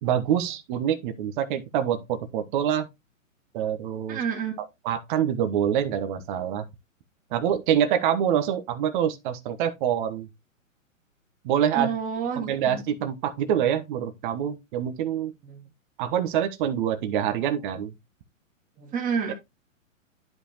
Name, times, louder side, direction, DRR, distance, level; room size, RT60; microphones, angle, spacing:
voice 1, 0.0-2.9 3.5-4.2 4.6-6.7 7.3-10.3 11.4-11.9 12.3-15.3 16.0-17.9, right 9 dB, 40° right, 1.2 m, -26 dB
voice 2, 4.1-4.6 11.7-12.8 15.4-15.6 18.8-19.3, right 6 dB, 20° right, 2.3 m, -29 dB
11.0 x 5.2 x 3.0 m
hypercardioid pair, 125°, 40 cm